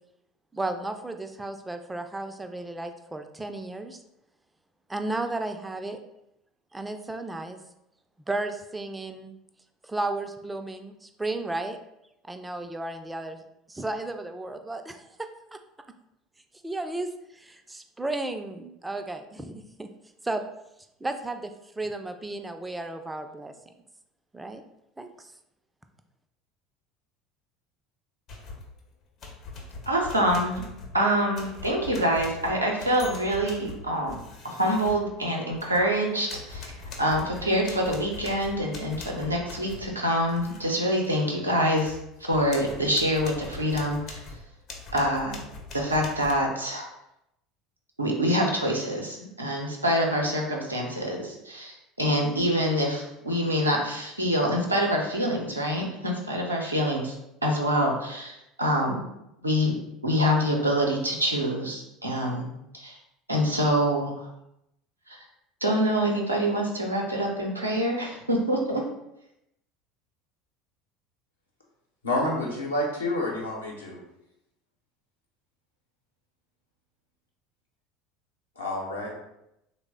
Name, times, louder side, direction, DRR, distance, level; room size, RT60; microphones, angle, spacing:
voice 1, 0.5-4.0 4.9-6.0 6.7-7.6 8.3-9.3 9.8-11.8 12.3-13.4 13.7-15.0 15.5-15.6 16.6-19.5 19.8-19.9 20.2-20.4 21.0-21.5 21.8-23.7 24.3-24.6 25.0-25.3, right 2 dB, 10° right, 7 dB, 0.3 m, -33 dB
sound 1, 28.3-28.8 29.2-35.9 36.3-40.7 41.0-41.2 41.6-46.3, left 3 dB, 45° left, 0.6 m, -42 dB
voice 2, 29.9-30.6 30.9-34.2 34.4-44.2 44.9-45.4 45.7-46.9 48.0-57.1 57.4-59.0 59.4-59.8 60.0-62.5 62.7-63.0 63.3-64.3 65.1-65.2 65.6-68.9, equal, 90° right, -1 dB, 0.5 m, -26 dB
voice 3, 72.0-74.0 78.6-79.1, left 1 dB, 80° left, -3 dB, 0.8 m, -28 dB
3.2 x 2.0 x 3.6 m, 0.84 s
figure-of-eight pair, 70°, 0 cm